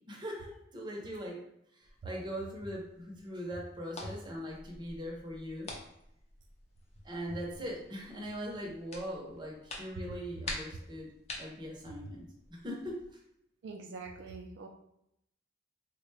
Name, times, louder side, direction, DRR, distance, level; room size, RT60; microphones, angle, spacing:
voice 1, 0.1-1.4 1.8-5.7 7.0-11.1 11.4-13.0, equal, 25° right, -1 dB, 0.6 m, -41 dB
sound 1, 1.8-13.1, left 2 dB, 35° left, 0.5 m, -48 dB
voice 2, 13.6-14.7, right 4 dB, 70° right, 2 dB, 0.4 m, -44 dB
3.7 x 2.1 x 3.2 m, 0.78 s
head